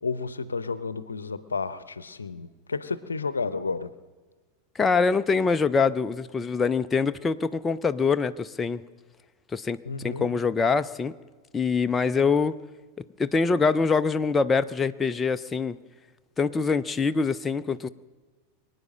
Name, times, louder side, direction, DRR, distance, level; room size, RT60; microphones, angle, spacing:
voice 1, 0.0-3.9 9.8-10.4, left 4 dB, 80° left, 15 dB, 0.7 m, -31 dB
voice 2, 4.8-8.8 9.5-11.1 11.5-12.6 13.2-15.8 16.4-17.9, left 5 dB, 20° left, 10 dB, 0.5 m, -24 dB
24.0 x 9.4 x 6.4 m, 1.4 s
figure-of-eight pair, 85°, 0 cm